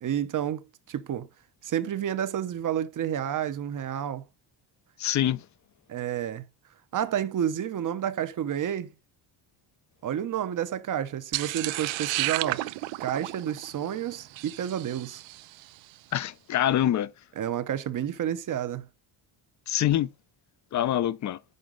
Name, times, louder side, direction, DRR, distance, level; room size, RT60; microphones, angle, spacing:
voice 1, 0.0-1.3 1.6-4.2 5.9-6.5 6.9-8.9 10.0-12.6 13.0-15.2 17.4-18.9, right 10 dB, 45° right, 0.7 m, -30 dB
voice 2, 5.0-5.5 16.1-17.1 19.7-20.1 20.7-21.4, left 12 dB, 40° left, 0.5 m, -25 dB
sound 1, 11.3-15.6, right 18 dB, 80° right, 0.5 m, -32 dB
6.5 x 5.0 x 3.8 m
cardioid pair, 130°, 46 cm